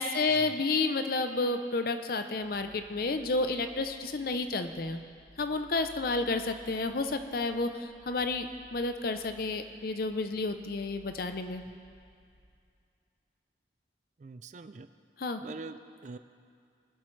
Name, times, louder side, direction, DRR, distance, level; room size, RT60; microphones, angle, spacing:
voice 1, 0.0-5.0 5.4-11.6 15.2-15.4, left 3 dB, 55° left, 8 dB, 0.6 m, -31 dB
sound 1, 2.4-12.5, right 1 dB, 85° left, 2.2 m, -58 dB
voice 2, 14.2-14.9 15.4-16.2, right 3 dB, 40° right, 11 dB, 0.4 m, -44 dB
21.5 x 7.5 x 3.2 m, 2.3 s
head